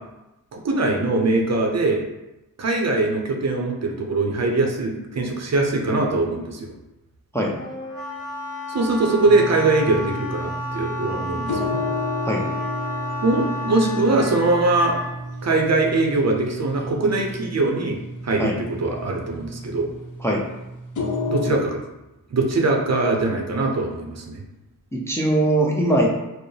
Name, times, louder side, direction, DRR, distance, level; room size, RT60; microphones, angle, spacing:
voice 1, 0.5-2.0 2.6-6.6 8.7-11.8 13.2-15.0 15.4-18.0 18.2-19.9 21.3-21.8 22.3-24.4, right 2 dB, 50° right, 1 dB, 0.6 m, -22 dB
Wind instrument woodwind instrument, 7.6-15.1, left 1 dB, 40° left, 1.2 m, -32 dB
sound 1, 9.2-21.5, left 1 dB, 60° left, 0.7 m, -32 dB
voice 2, 24.9-26.1, right 1 dB, 10° left, -3 dB, 0.4 m, -21 dB
4.5 x 2.0 x 3.2 m, 0.97 s
wide cardioid pair, 130°, 35 cm